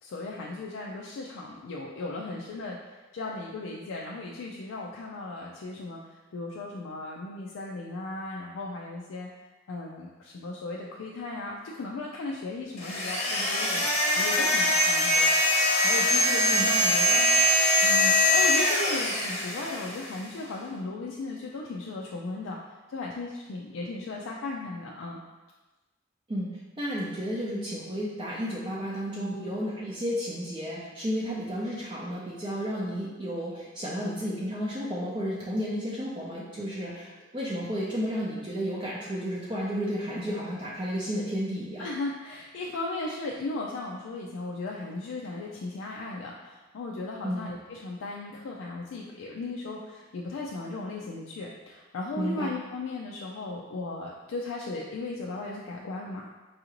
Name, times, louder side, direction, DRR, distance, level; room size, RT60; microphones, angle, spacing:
voice 1, 0.0-9.3 9.7-15.3 15.8-22.6 22.9-25.2 29.2-29.3 41.8-56.3, left 2 dB, 90° left, -2 dB, 0.4 m, -36 dB
sound 1, 12.8-20.1, left 1 dB, 35° left, 0.8 m, -23 dB
voice 2, 26.8-41.9 47.2-47.5 52.2-52.5, equal, 25° right, -7 dB, 0.5 m, -32 dB
4.7 x 2.5 x 2.9 m, 1.2 s
head